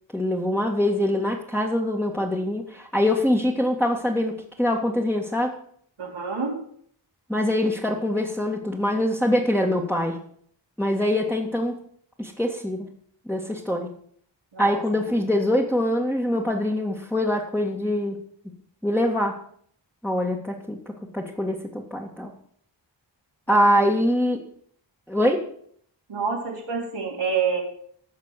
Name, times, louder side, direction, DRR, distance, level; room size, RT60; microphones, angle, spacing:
voice 1, 0.1-5.6 7.3-10.2 10.8-11.8 12.2-12.9 13.3-14.0 14.6-18.6 18.8-19.4 20.0-22.3 23.5-24.4 25.1-25.5, left 1 dB, 5° left, -3 dB, 2.2 m, -24 dB
voice 2, 6.0-6.6 14.5-14.8 23.5-23.9 26.1-27.6, right 5 dB, 90° right, -4 dB, 4.1 m, -28 dB
15.0 x 6.1 x 8.3 m, 0.62 s
wide cardioid pair, 55°, 46 cm